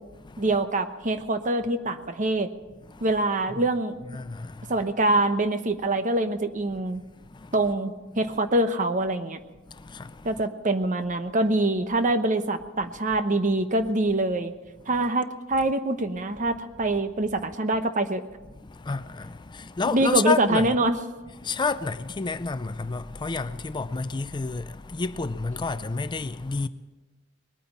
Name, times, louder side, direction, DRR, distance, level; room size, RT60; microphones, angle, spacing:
voice 1, 0.4-2.5 3.0-4.0 4.7-7.0 7.5-9.4 10.2-14.5 14.9-18.2 19.9-21.0, right 2 dB, 40° right, 1.0 m, -24 dB
voice 2, 4.1-4.8 7.1-7.5 9.6-10.5 15.0-15.1 18.5-20.7 21.4-26.7, left 4 dB, 20° left, 0.4 m, -30 dB
20.5 x 9.3 x 7.2 m
head